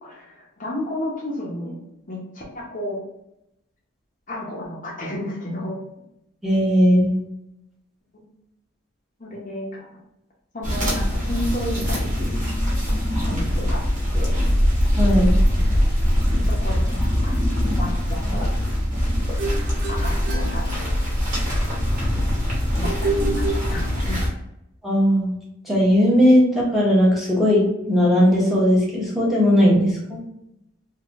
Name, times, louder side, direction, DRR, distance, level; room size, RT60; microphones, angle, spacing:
voice 1, 0.0-3.0 4.3-5.8 8.1-8.3 9.2-9.9 10.5-12.4 13.3-13.8 14.1-14.4 16.5-18.6 19.9-21.0 22.8-24.2, left 1 dB, 35° left, -4 dB, 0.6 m, -32 dB
voice 2, 6.4-7.2 15.0-15.3 24.8-25.3 25.6-30.2, equal, ahead, -7 dB, 0.8 m, -18 dB
sound 1, 10.6-24.3, equal, 35° right, 1.0 m, -22 dB
sound 2, 19.4-21.3 22.8-24.3, right 3 dB, 60° right, 0.6 m, -29 dB
3.1 x 2.6 x 2.5 m, 0.83 s
head